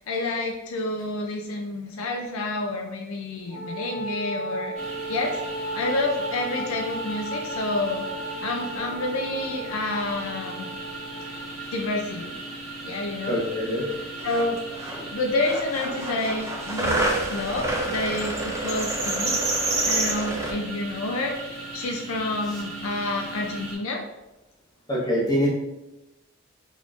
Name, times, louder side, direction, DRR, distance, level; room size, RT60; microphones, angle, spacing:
voice 1, 0.0-4.8 5.1-5.4 5.7-8.0 8.4-10.7 11.7-12.4 12.8-13.4 14.2-14.6 15.1-19.4 19.9-24.0, left 2 dB, 75° left, 2 dB, 0.4 m, -29 dB
Wind instrument woodwind instrument, 3.5-11.5, right 1 dB, 65° right, 1.5 m, -35 dB
sound 1, 4.7-23.7, right 2 dB, 35° right, 1.4 m, -38 dB
voice 2, 13.3-13.9 24.9-25.5, equal, 20° left, -4 dB, 0.8 m, -24 dB
sound 2, 13.9-14.0 14.2-15.0 15.4-20.5, right 2 dB, 15° right, 0.4 m, -27 dB
4.0 x 2.9 x 2.4 m, 0.98 s
head